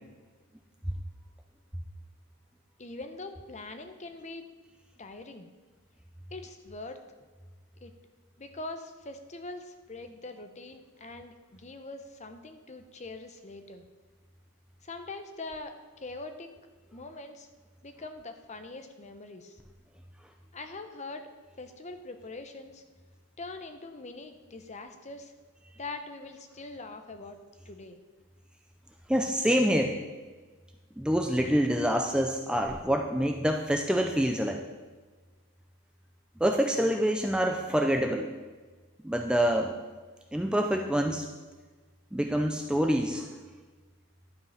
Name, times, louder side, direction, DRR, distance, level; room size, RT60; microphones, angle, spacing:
voice 1, 2.8-4.4 5.0-5.5 6.3-7.0 7.8-7.9 8.4-13.8 14.8-16.5 16.9-17.5 17.8-19.6 20.5-21.3 21.6-22.8 23.4-25.3 25.7-27.4 27.6-28.0, left 2 dB, 30° left, 7 dB, 0.7 m, -43 dB
voice 2, 29.1-29.9 31.0-34.6 36.4-38.3 39.0-39.7 40.3-41.2 42.1-43.3, equal, 5° right, 3 dB, 0.4 m, -26 dB
11.0 x 5.4 x 5.7 m, 1.3 s
head